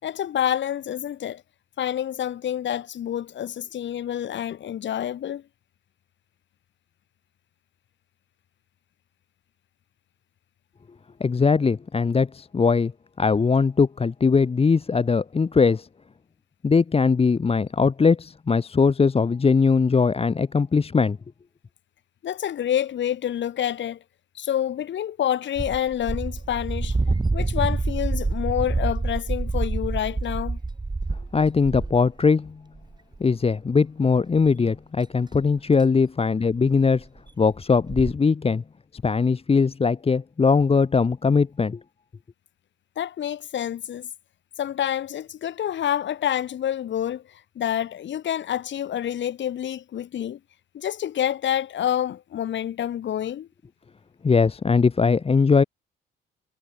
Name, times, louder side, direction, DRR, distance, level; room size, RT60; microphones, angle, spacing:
voice 1, 0.0-1.4 1.8-5.4 22.2-24.0 24.4-27.0 27.3-30.6 43.0-44.1 44.6-50.4 50.7-53.5, left 10 dB, 65° left, 7.1 m, -28 dB
voice 2, 11.2-12.9 13.2-15.9 16.6-21.2 31.3-32.6 33.2-37.1 37.4-38.6 38.9-41.8 54.2-55.6, left 5 dB, 30° left, 1.4 m, -20 dB
sound 1, 25.6-32.1 32.8-33.2 33.5-33.6 34.4-34.5 35.4-35.5 35.8-35.9 36.5-36.7 37.0-37.1 37.3-37.4 37.7-38.1, right 3 dB, 20° right, 6.3 m, -27 dB
cardioid pair, 90°, 20 cm